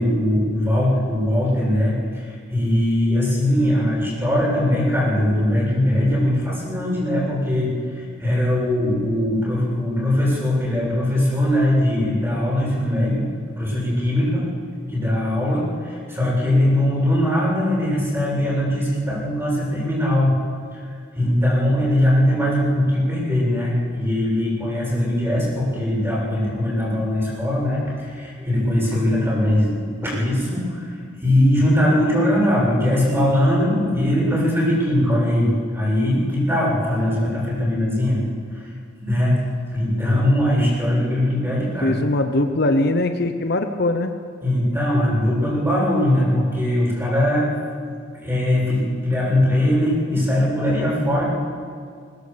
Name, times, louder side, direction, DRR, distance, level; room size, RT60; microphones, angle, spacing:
voice 1, 0.0-13.3 13.6-14.5 14.9-20.4 21.1-30.9 31.2-38.2 38.5-38.6 39.0-39.4 39.7-42.0 44.4-47.5 48.1-51.3, left 1 dB, 10° right, -5 dB, 7.5 m, -20 dB
voice 2, 41.8-44.1, left 2 dB, 55° left, 7 dB, 0.9 m, -21 dB
21.5 x 19.0 x 6.9 m, 2.1 s
head